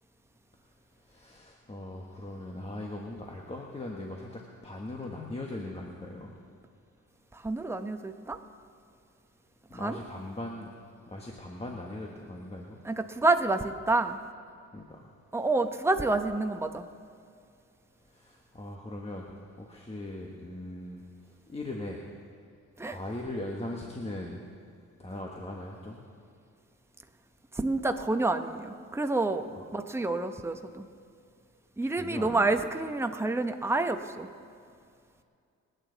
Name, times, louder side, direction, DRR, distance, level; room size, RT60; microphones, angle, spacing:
voice 1, 1.1-6.4 9.7-10.7 11.1-12.8 14.7-15.1 18.1-21.0 21.5-22.0 22.8-24.4 25.0-26.0 29.5-29.6 31.8-32.5, left 1 dB, 20° left, -1 dB, 1.5 m, -39 dB
voice 2, 7.3-8.4 9.8-10.0 12.8-14.2 15.3-16.8 22.8-23.0 27.5-30.9 31.8-34.3, right 2 dB, 10° right, 6 dB, 0.9 m, -28 dB
28.0 x 9.3 x 4.0 m, 2.3 s
cardioid pair, 90°, 30 cm